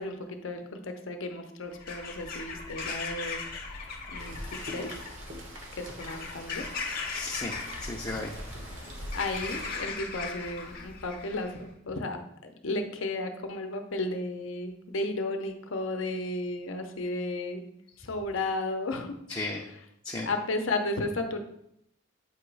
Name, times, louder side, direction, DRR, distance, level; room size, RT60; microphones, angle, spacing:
voice 1, 0.0-4.4 4.6-4.9 5.8-6.6 9.1-12.2 12.4-17.6 18.0-19.1 20.3-21.4, left 2 dB, 70° left, 5 dB, 0.7 m, -33 dB
Bird vocalization bird call bird song / Crow, 1.7-11.6, left 4 dB, 45° left, 0.9 m, -39 dB
Rain, 4.2-9.8, equal, 70° right, 1.3 m, -43 dB
voice 2, 7.1-8.3 19.3-19.7 20.0-20.3, left 2 dB, 20° left, -2 dB, 0.5 m, -35 dB
8.1 x 3.0 x 4.7 m, 0.77 s
head